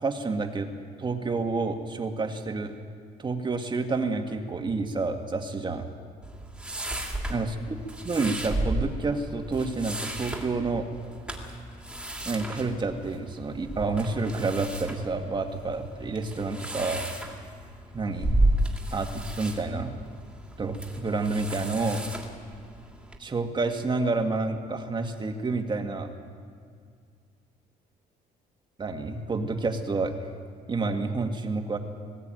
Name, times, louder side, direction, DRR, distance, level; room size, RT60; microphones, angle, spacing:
voice 1, 0.0-0.7 1.0-2.7 3.2-5.9 7.3-7.8 8.0-10.9 12.3-17.1 17.9-18.4 18.9-19.9 20.6-22.0 23.2-26.1 28.8-30.1 30.7-31.8, right 3 dB, 25° right, 5 dB, 2.0 m, -29 dB
sound 1, 6.2-23.2, right 1 dB, 5° right, 2.9 m, -33 dB
20.0 x 16.0 x 9.2 m, 2.1 s
cardioid pair, 110°, 17 cm